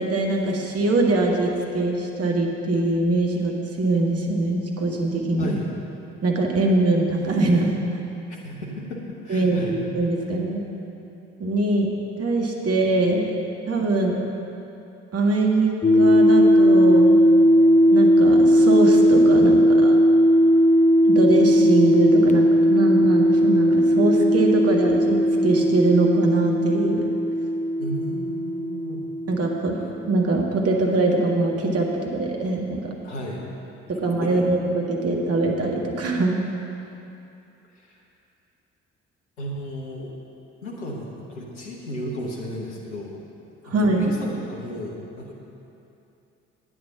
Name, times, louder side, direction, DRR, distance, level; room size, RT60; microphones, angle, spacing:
voice 1, 0.0-5.6 6.2-7.8 9.3-10.6 11.4-11.9 12.2-13.2 13.7-14.2 15.1-17.2 17.9-20.0 21.0-27.1 29.3-29.8 30.0-32.9 34.0-36.4 43.7-44.2, right 2 dB, 45° right, 0 dB, 1.8 m, -22 dB
voice 2, 8.3-9.7 27.8-29.1 33.0-33.4 33.9-34.4 37.7-38.0 39.4-40.1 40.6-43.2 43.6-45.3, equal, 85° left, -2 dB, 1.1 m, -34 dB
sound 1, 15.8-29.8, equal, 20° left, 0.8 m, -17 dB
9.7 x 9.5 x 5.9 m, 2.8 s
figure-of-eight pair, 45°, 34 cm